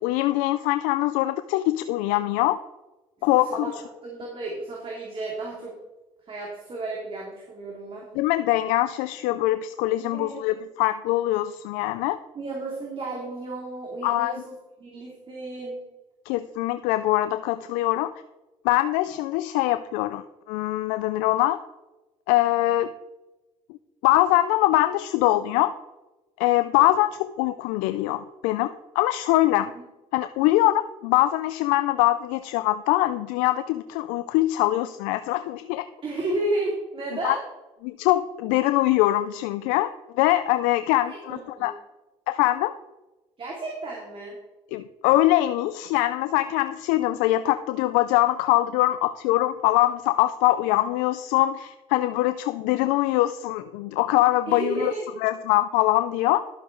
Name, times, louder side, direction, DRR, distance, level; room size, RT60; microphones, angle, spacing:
voice 1, 0.0-2.6 3.2-3.7 8.1-12.2 14.0-14.3 16.3-18.1 18.6-21.6 22.3-22.9 24.0-25.7 26.4-29.7 30.1-35.9 37.2-37.4 37.8-41.7 42.3-42.7 44.7-54.9 55.2-56.4, left 16 dB, 85° left, 12 dB, 0.4 m, -23 dB
voice 2, 3.4-5.7 6.3-8.1 10.0-10.4 12.3-15.8 36.0-37.4 41.1-41.7 43.4-44.4 54.5-55.1, right 2 dB, 40° right, -2 dB, 2.7 m, -32 dB
11.5 x 7.6 x 3.8 m, 1.1 s
supercardioid pair, 75°, 13 cm